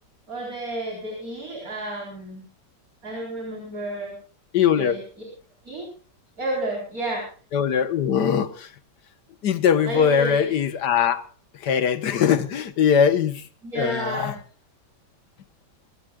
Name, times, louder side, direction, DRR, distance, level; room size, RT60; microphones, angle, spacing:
voice 1, 0.3-2.4 3.0-4.2 4.8-5.0 5.6-5.9 6.4-7.2 9.8-10.5 13.6-14.4, right 1 dB, 50° right, 4.7 m, -31 dB
voice 2, 4.5-5.0 7.5-8.7 9.4-11.2 11.6-13.4 13.8-14.3, left 8 dB, 65° left, 1.7 m, -21 dB
23.0 x 17.0 x 2.4 m
omnidirectional pair, 2.0 m